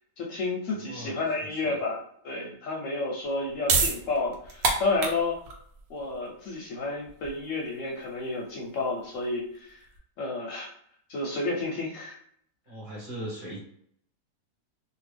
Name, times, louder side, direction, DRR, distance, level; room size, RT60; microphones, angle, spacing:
voice 1, 0.2-5.4 5.9-9.8 10.2-10.7 11.1-12.2, left 3 dB, 65° left, -1 dB, 0.9 m, -31 dB
voice 2, 0.9-1.8 12.7-13.6, right 1 dB, 35° right, -6 dB, 1.1 m, -39 dB
sound 1, 3.2-10.0, right 3 dB, 70° right, 1.1 m, -31 dB
2.6 x 2.6 x 3.3 m, 0.66 s
omnidirectional pair, 1.6 m